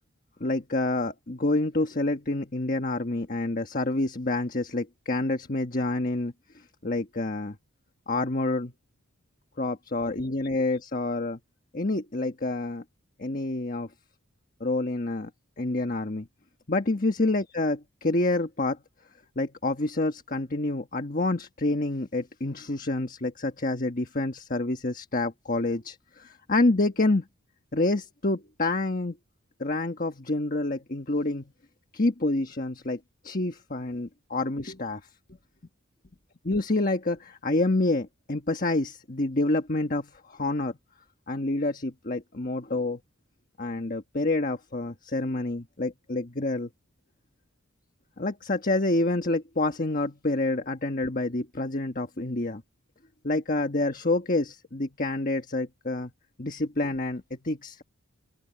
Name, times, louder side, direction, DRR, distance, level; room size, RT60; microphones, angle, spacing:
voice 1, 0.4-6.3 6.8-7.6 8.1-8.7 9.6-11.4 11.7-12.8 13.2-13.9 14.6-15.3 15.6-16.3 16.7-18.8 19.4-27.2 27.7-29.1 29.6-31.5 31.9-35.0 36.4-40.7 41.3-43.0 43.6-46.7 48.2-52.6 53.2-56.1 56.4-57.8, left 2 dB, 40° left, 1.4 m, -28 dB
open air
head